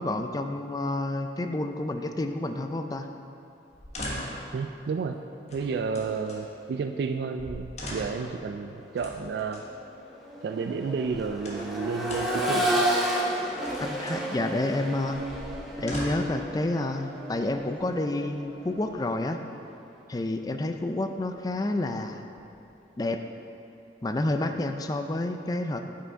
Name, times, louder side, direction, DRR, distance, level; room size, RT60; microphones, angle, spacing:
voice 1, 0.0-3.1 13.8-15.2 15.8-19.4 20.1-22.2 23.0-23.2 24.0-25.8, left 2 dB, 20° left, 6 dB, 0.4 m, -29 dB
sound 1, 3.7-4.5 5.5-6.4 7.1-7.2 7.4-8.3 9.0-9.7 10.8-11.8 12.1-12.5 13.4-14.3 15.1-16.4 17.2-17.9, left 1 dB, 40° left, 1.2 m, -39 dB
voice 2, 4.5-5.2 5.5-9.6 10.4-12.8, right 5 dB, 65° right, 6 dB, 0.3 m, -31 dB
Accelerating revving vroom, 8.9-9.0 9.5-19.4 21.1-21.2, right 1 dB, ahead, 0.8 m, -32 dB
8.6 x 5.6 x 4.6 m, 2.7 s
head